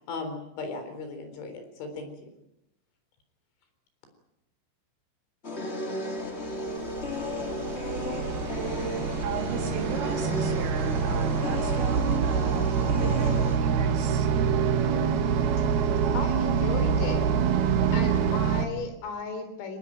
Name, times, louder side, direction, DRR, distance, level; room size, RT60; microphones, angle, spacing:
voice 1, 0.0-2.1, left 3 dB, 70° left, 7 dB, 6.3 m, -37 dB
sound 1, 5.4-13.6, left 1 dB, 25° left, 1.3 m, -33 dB
sound 2, 6.5-18.7, right 6 dB, 60° right, 2.9 m, -26 dB
voice 2, 9.2-12.7 13.0-14.3, right 7 dB, 80° right, 4 dB, 5.4 m, -36 dB
voice 3, 16.1-17.3 17.9-19.8, left 4 dB, 90° left, 9 dB, 6.0 m, -35 dB
25.0 x 19.0 x 9.1 m, 0.85 s
omnidirectional pair, 5.7 m